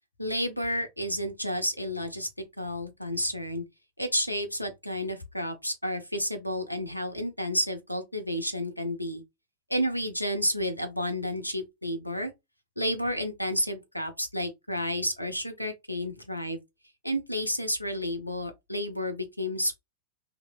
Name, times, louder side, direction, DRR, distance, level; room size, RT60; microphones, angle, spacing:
voice 1, 0.2-2.3 2.6-3.6 4.0-9.2 9.7-12.3 12.8-16.6 17.0-19.8, equal, 90° left, 0.6 m, -31 dB
2.8 x 2.0 x 2.4 m
figure-of-eight pair, 90°, 0 cm